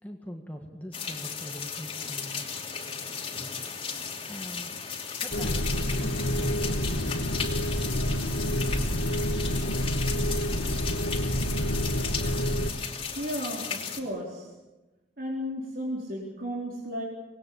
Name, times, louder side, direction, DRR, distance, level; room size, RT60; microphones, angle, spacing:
voice 1, 0.0-2.6 4.3-4.8 5.2-7.1, equal, 10° left, 2 dB, 1.8 m, -42 dB
sound 1, 0.9-14.0, left 6 dB, 30° left, 2.8 m, -35 dB
sound 2, 5.3-12.7, equal, 75° left, 1.8 m, -28 dB
voice 2, 13.2-14.5 15.2-17.0, equal, 50° right, -3 dB, 4.2 m, -34 dB
25.5 x 20.0 x 8.7 m, 1.1 s
head